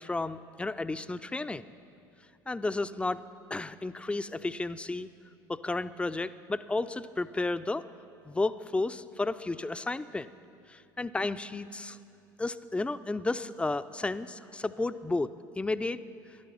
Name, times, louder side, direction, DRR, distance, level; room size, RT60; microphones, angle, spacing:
voice 1, 0.0-1.7 2.5-3.2 3.5-5.1 5.5-7.9 8.2-10.3 10.7-12.0 12.4-16.0, left 2 dB, 10° left, 13 dB, 0.4 m, -32 dB
15.0 x 11.5 x 6.0 m, 2.5 s
figure-of-eight pair, 65°, 12 cm